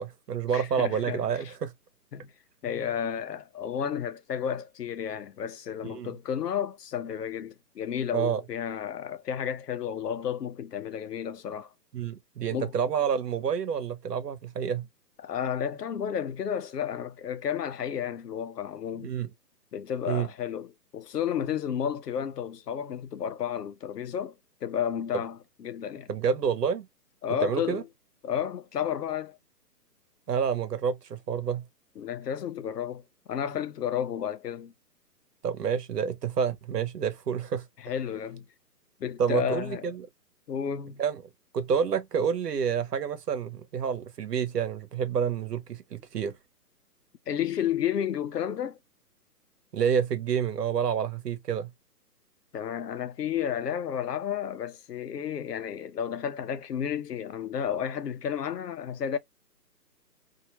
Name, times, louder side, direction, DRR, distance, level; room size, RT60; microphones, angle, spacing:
voice 1, 0.0-1.7 5.8-6.1 8.1-8.4 11.9-14.9 19.0-19.3 20.1-20.3 26.1-26.9 27.4-27.8 30.3-31.6 35.4-37.6 39.2-40.1 41.0-41.2 41.5-46.3 49.7-51.7, right 7 dB, 70° right, 1.1 m, -28 dB
voice 2, 0.5-1.5 2.1-2.3 2.6-11.7 12.5-12.7 15.2-19.1 19.7-24.3 24.6-26.1 27.2-27.8 28.2-29.4 32.0-33.0 33.3-34.7 37.8-38.4 39.0-39.9 40.5-41.0 47.3-48.8 52.5-59.2, left 8 dB, 70° left, 0.8 m, -32 dB
2.9 x 2.8 x 2.9 m
hypercardioid pair, 160°, 49 cm